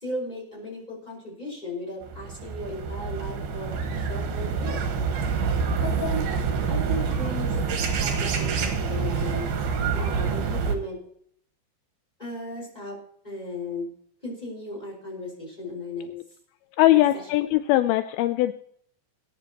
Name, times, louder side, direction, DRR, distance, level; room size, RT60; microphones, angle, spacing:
voice 1, 0.0-4.8 5.8-6.2 6.7-7.6 7.9-9.5 9.9-11.0 12.2-13.0 13.2-13.9 14.2-16.1 16.9-17.0, left 1 dB, 10° left, -3 dB, 5.1 m, -35 dB
sound 1, 2.0-10.8, right 5 dB, 80° right, 3.3 m, -27 dB
voice 2, 16.8-18.5, left 15 dB, 85° left, 10 dB, 2.5 m, -21 dB
19.5 x 10.5 x 3.0 m, 0.63 s
omnidirectional pair, 4.4 m